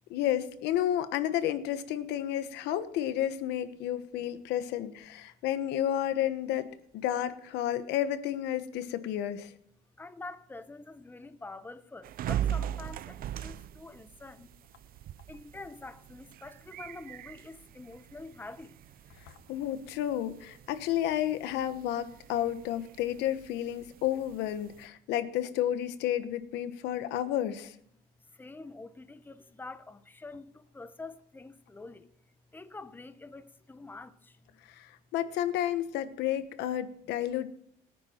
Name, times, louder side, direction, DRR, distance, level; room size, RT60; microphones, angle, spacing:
voice 1, 0.1-6.7 6.9-9.5 19.3-27.8 34.7-37.5, left 11 dB, 90° left, 1.2 m, -31 dB
voice 2, 10.0-14.5 15.3-18.7 28.4-32.1 32.5-34.1, left 3 dB, 10° left, 0.9 m, -46 dB
sound 1, 12.0-24.9, right 10 dB, 60° right, 0.6 m, -41 dB
22.0 x 9.9 x 4.5 m
cardioid pair, 110°, 17 cm